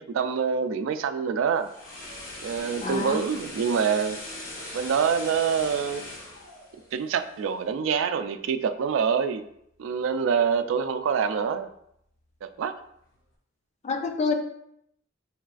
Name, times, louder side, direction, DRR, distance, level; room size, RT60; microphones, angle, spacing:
voice 1, 0.0-1.7 2.4-4.2 4.7-6.0 6.9-9.5 9.8-11.7 12.4-12.7, right 6 dB, 75° right, 11 dB, 0.3 m, -26 dB
sound 1, 1.4-7.6 7.9-8.1, left 1 dB, 70° left, 1.2 m, -40 dB
voice 2, 2.8-3.2 13.8-14.3, left 4 dB, 35° left, 5 dB, 0.4 m, -27 dB
6.4 x 2.3 x 2.4 m, 0.75 s
head